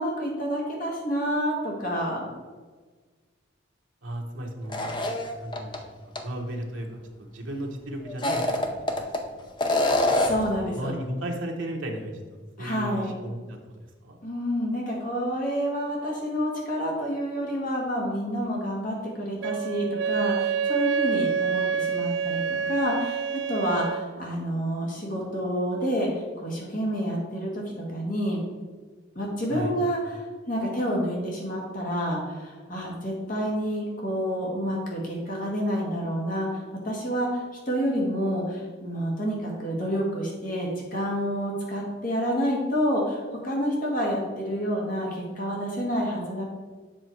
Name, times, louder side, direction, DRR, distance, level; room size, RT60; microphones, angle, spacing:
voice 1, 0.0-2.3 10.1-10.9 12.6-13.1 14.2-26.1 26.4-27.6 27.9-28.4 29.2-37.4 37.7-46.4, equal, 45° left, -2 dB, 1.8 m, -28 dB
voice 2, 4.0-5.1 5.4-8.9 9.3-9.5 10.3-10.4 10.7-13.6 14.0-14.2 29.5-29.7, right 1 dB, 80° right, 1 dB, 1.3 m, -35 dB
sound 1, 4.7-5.8 6.2-6.3 8.1-9.2 9.6-10.5, left 1 dB, 25° left, 0.6 m, -25 dB
Wind instrument woodwind instrument, 19.4-24.1, right 6 dB, 60° right, 0.3 m, -27 dB
7.7 x 5.6 x 4.5 m, 1.4 s
head